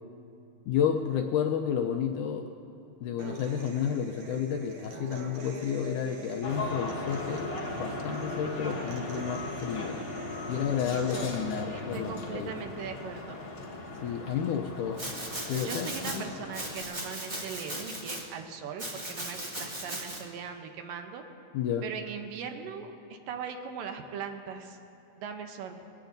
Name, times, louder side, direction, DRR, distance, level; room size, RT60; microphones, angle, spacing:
voice 1, 0.7-2.5 3.0-10.0 10.5-12.5 14.0-15.0 15.5-16.3 21.5-21.9, left 8 dB, 80° left, 3 dB, 1.9 m, -31 dB
Human voice / Acoustic guitar, 3.2-11.2, right 1 dB, 60° right, 1.5 m, -44 dB
sound 1, 6.4-16.8, left 2 dB, 50° left, 1.3 m, -38 dB
voice 2, 10.9-11.3 11.7-13.4 15.6-21.2 21.8-24.8 25.2-25.8, right 6 dB, 75° right, 5 dB, 2.4 m, -40 dB
Domestic sounds home sounds, 15.0-16.2 16.5-18.2 18.8-20.2, right 1 dB, 40° right, 0.6 m, -37 dB
21.0 x 17.0 x 2.6 m, 2.8 s
omnidirectional pair, 4.1 m